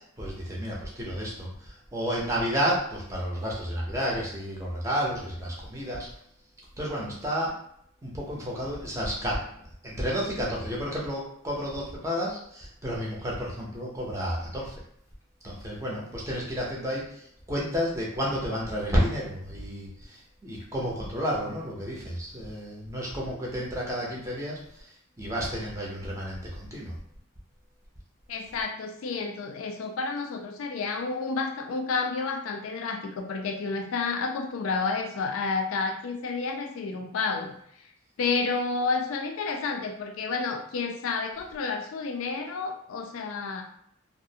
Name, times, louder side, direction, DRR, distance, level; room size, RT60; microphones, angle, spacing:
voice 1, 0.0-6.1 6.8-7.5 8.0-9.4 9.8-14.8 15.4-27.0, equal, 15° right, -4 dB, 0.5 m, -31 dB
voice 2, 28.3-37.6 38.2-43.6, left 4 dB, 75° left, 4 dB, 0.3 m, -30 dB
2.4 x 2.0 x 2.7 m, 0.70 s
head